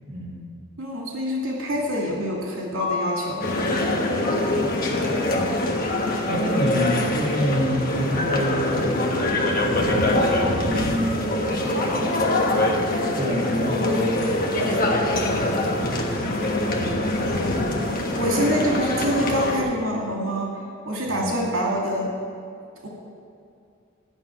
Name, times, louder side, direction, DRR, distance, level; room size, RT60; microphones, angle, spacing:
voice 1, 0.1-0.4 4.1-5.6 6.3-9.1 9.4-14.2 14.6-16.5 21.0-21.3, equal, 30° right, -6 dB, 2.6 m, -29 dB
voice 2, 0.8-3.4 18.1-20.5 20.8-22.1 22.8-22.9, equal, 75° right, -2 dB, 2.6 m, -26 dB
Mallet percussion, 2.8-4.6, left 5 dB, 65° left, 1.1 m, -33 dB
sound 1, 3.4-19.6, left 1 dB, 45° left, 1.3 m, -24 dB
12.0 x 6.6 x 9.1 m, 2.4 s
head